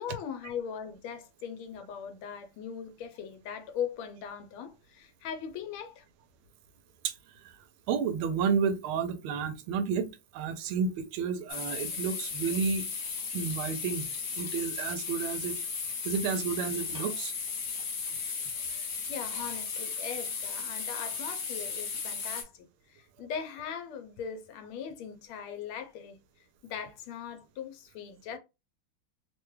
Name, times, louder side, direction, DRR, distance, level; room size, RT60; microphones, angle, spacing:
voice 1, 0.0-6.0 19.1-26.2 26.6-28.4, left 7 dB, 85° left, 1.5 m, -40 dB
voice 2, 7.9-10.1 10.3-12.9 13.3-14.1 14.4-15.6 16.0-17.3, right 6 dB, 90° right, 1.5 m, -31 dB
sound 1, 11.5-22.4, left 5 dB, 55° left, 1.0 m, -35 dB
3.6 x 2.2 x 3.1 m
omnidirectional pair, 2.2 m